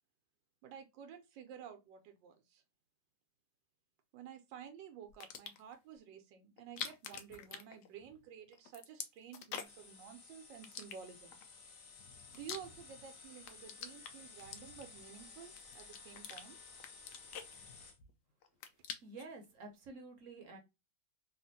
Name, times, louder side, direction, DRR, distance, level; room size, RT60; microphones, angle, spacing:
voice 1, 0.6-2.6 4.1-11.4 12.3-16.6, right 8 dB, 85° right, 1.3 m, -52 dB
sound 1, 5.1-5.7 6.6-8.3 8.5-9.9 10.6-11.4 12.0-13.1 13.4-15.1 15.6-16.4 16.8-18.1 18.4-19.3, left 7 dB, 75° left, 1.1 m, -46 dB
sound 2, 9.6-18.0, left 4 dB, 50° left, 0.7 m, -55 dB
voice 2, 19.0-20.6, right 3 dB, 55° right, 0.9 m, -50 dB
3.3 x 2.4 x 2.6 m
omnidirectional pair, 1.9 m